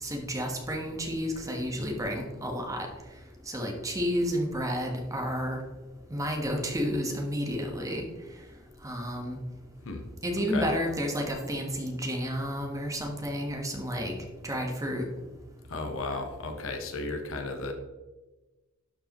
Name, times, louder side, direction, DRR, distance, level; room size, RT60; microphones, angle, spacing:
voice 1, 0.0-2.9 3.5-5.6 6.1-8.0 8.8-9.4 10.2-14.1 14.4-15.0, equal, 15° right, 2 dB, 1.2 m, -31 dB
voice 2, 15.7-17.7, left 3 dB, 70° left, 4 dB, 1.0 m, -34 dB
12.0 x 4.7 x 3.0 m, 1.2 s
head